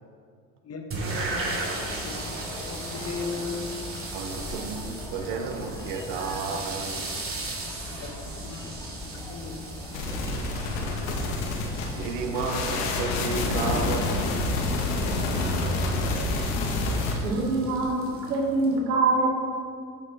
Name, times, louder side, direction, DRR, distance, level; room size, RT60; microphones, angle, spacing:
sound 1, 0.9-18.8, right 2 dB, 30° right, 2.5 m, -37 dB
sound 2, 1.1-17.3, left 2 dB, 10° left, 0.5 m, -41 dB
voice 1, 2.6-3.8 8.0-8.7 9.1-9.6, left 5 dB, 30° left, 4 dB, 1.5 m, -37 dB
voice 2, 4.1-7.1 11.9-14.4, right 5 dB, 55° right, 4 dB, 1.4 m, -32 dB
sound 3, 9.9-17.1, left 2 dB, 60° left, 1.8 m, -28 dB
voice 3, 17.2-19.3, right 3 dB, 75° right, -1 dB, 2.4 m, -24 dB
14.0 x 6.7 x 3.7 m, 2.2 s
hypercardioid pair, 75°, 46 cm